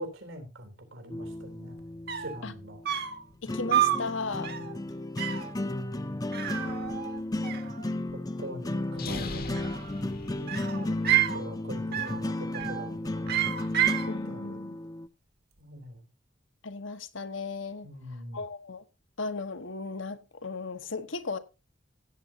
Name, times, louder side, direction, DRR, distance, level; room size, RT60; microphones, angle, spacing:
voice 1, 0.0-1.8 2.2-2.8 4.3-4.7 6.4-6.8 7.8-9.5 10.4-11.1 11.3-13.5 13.9-14.6 15.6-16.1 17.8-18.4, right 1 dB, 85° right, 3.7 m, -43 dB
sound 1, 1.1-15.1, left 2 dB, 20° left, 0.6 m, -34 dB
sound 2, 1.8-1.9 2.1-2.4 2.9-3.2 3.7-4.1 4.4-4.7 5.2-5.5 6.3-7.2 7.4-8.1 9.4-10.0 10.5-11.4 11.9-12.2 12.5-12.9 13.3-14.1, right 12 dB, 55° right, 1.3 m, -29 dB
voice 2, 3.4-4.5 10.4-10.9 14.1-14.8 16.6-17.9 18.3-18.8 19.2-21.4, left 4 dB, 80° left, 1.3 m, -36 dB
sound 3, 8.9-11.0, left 4 dB, 55° left, 1.1 m, -41 dB
16.5 x 8.9 x 2.9 m
head